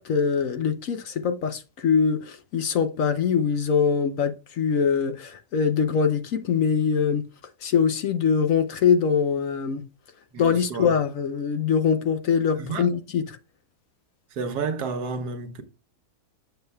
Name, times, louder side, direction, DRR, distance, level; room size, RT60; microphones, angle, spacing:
voice 1, 0.0-7.2 7.6-9.8 10.4-13.2, left 6 dB, 65° left, 1.0 m, -23 dB
voice 2, 10.3-10.9 12.5-12.9 14.3-15.6, right 4 dB, 80° right, 1.4 m, -31 dB
7.9 x 6.9 x 2.2 m
omnidirectional pair, 1.7 m